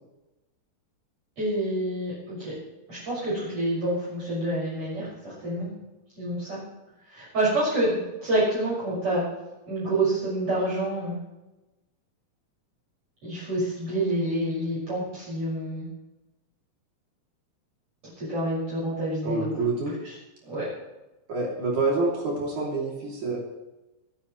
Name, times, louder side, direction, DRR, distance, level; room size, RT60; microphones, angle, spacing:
voice 1, 1.4-2.5 2.9-5.7 6.2-6.6 7.0-9.3 9.7-11.2 13.2-15.9 18.2-19.5 20.5-20.7, right 1 dB, 45° right, -9 dB, 6.9 m, -27 dB
voice 2, 19.2-19.9 21.3-23.4, right 3 dB, 65° right, -3 dB, 4.4 m, -27 dB
24.5 x 12.5 x 3.2 m, 1.0 s
omnidirectional pair, 3.6 m